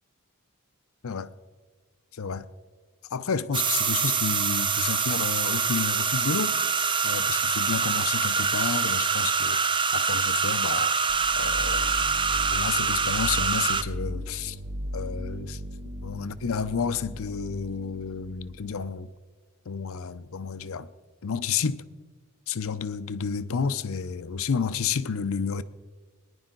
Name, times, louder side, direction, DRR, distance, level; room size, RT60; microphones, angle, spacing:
voice 1, 2.1-2.4 3.1-6.6 7.0-9.6 9.9-11.0 11.4-11.9 12.5-14.6 14.9-15.6 16.0-19.1 19.7-20.9 21.2-21.8 22.5-25.6, left 6 dB, 70° left, 0.6 m, -30 dB
sound 1, 3.5-13.8, right 5 dB, 20° right, 0.5 m, -25 dB
sound 2, 11.1-18.8, equal, 50° right, 1.1 m, -37 dB
20.5 x 10.5 x 3.9 m
head